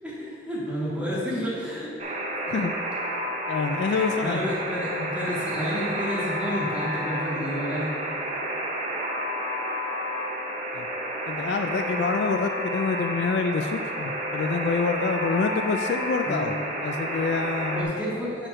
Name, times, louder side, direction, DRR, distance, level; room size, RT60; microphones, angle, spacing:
voice 1, 0.0-2.2 3.8-7.9 16.2-16.5 17.7-18.5, equal, 5° right, -8 dB, 1.8 m, -30 dB
Alarm, 2.0-17.8, equal, 35° right, 0.8 m, -30 dB
voice 2, 3.5-4.4 5.0-5.1 10.7-10.9 11.3-16.6 16.8-17.9, left 4 dB, 60° left, 7 dB, 0.3 m, -27 dB
6.6 x 4.4 x 6.2 m, 2.3 s
head